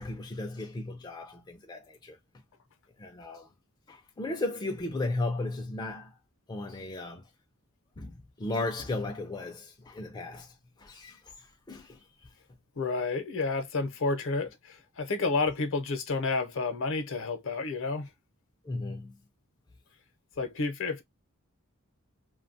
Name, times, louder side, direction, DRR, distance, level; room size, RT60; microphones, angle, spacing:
voice 1, 0.0-2.2 3.0-3.5 3.9-6.1 6.5-7.2 8.0-10.5 10.8-11.3 11.7-12.0 18.7-19.2, left 2 dB, 20° left, 0.3 m, -35 dB
voice 2, 12.8-18.1 20.4-21.0, left 3 dB, 65° left, 0.6 m, -30 dB
2.6 x 2.2 x 2.5 m
head